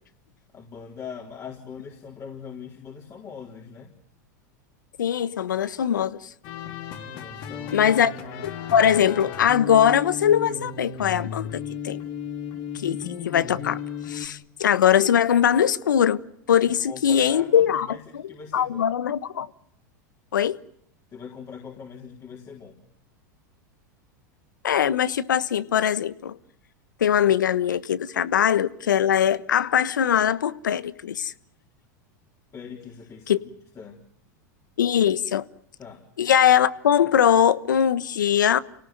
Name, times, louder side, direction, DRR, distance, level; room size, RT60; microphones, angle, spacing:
voice 1, 0.5-4.0 7.1-7.9 16.8-18.0 18.3-18.9 21.1-22.8 32.5-33.5 33.8-34.0 35.8-36.1, left 6 dB, 30° left, 4.1 m, -41 dB
voice 2, 5.0-6.2 7.7-8.1 8.4-12.0 12.7-13.8 14.1-16.2 16.5-17.9 18.1-19.5 20.3-20.6 24.6-26.4 27.0-31.3 33.3-33.4 34.8-35.4 36.2-38.6, left 9 dB, 85° left, 1.2 m, -21 dB
sound 1, 6.4-14.3, left 8 dB, 55° left, 3.8 m, -35 dB
29.0 x 18.5 x 9.2 m
hypercardioid pair, 105°, 10 cm